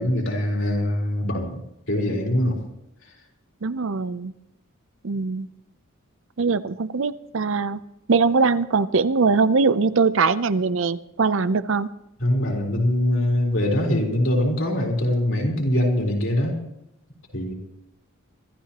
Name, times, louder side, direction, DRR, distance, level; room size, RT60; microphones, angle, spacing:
voice 1, 0.0-1.6 1.9-2.6 12.2-16.6 17.3-17.5, left 1 dB, 60° left, -1 dB, 3.8 m, -23 dB
voice 2, 3.6-4.3 5.0-5.5 6.4-7.8 8.1-11.9, right 4 dB, 60° right, 15 dB, 0.6 m, -21 dB
25.0 x 13.0 x 3.0 m, 0.86 s
head